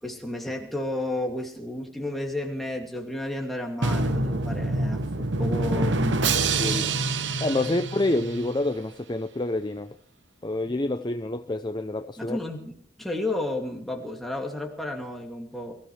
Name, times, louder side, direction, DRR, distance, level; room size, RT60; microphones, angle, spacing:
voice 1, 0.0-6.3 12.2-15.8, left 1 dB, ahead, 2.5 m, -32 dB
Drum, 3.8-8.7, right 3 dB, 60° right, 1.0 m, -26 dB
voice 2, 6.6-6.9 7.4-9.9 10.4-12.4, left 2 dB, 20° left, 0.6 m, -27 dB
23.5 x 15.5 x 3.3 m
head